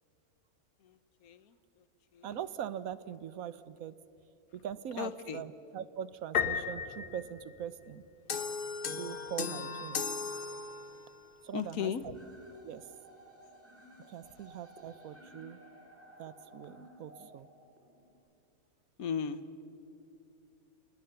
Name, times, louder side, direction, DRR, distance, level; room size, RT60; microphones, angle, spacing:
voice 1, 1.2-1.5 2.1-2.3 5.0-5.4 11.5-12.0 19.0-19.4, left 7 dB, 70° left, 13 dB, 1.4 m, -36 dB
voice 2, 2.2-4.0 4.5-8.0 8.9-10.0 11.4-12.1 12.6-12.9 14.1-15.6 16.2-17.5, right 9 dB, 70° right, 15 dB, 1.2 m, -42 dB
Piano, 6.3-8.2, left 6 dB, 90° left, 1.8 m, -34 dB
sound 1, 8.3-11.2, left 4 dB, 40° left, 1.0 m, -37 dB
sound 2, 12.1-18.1, equal, 10° right, 2.9 m, -56 dB
30.0 x 19.5 x 6.9 m, 2.7 s
omnidirectional pair, 1.6 m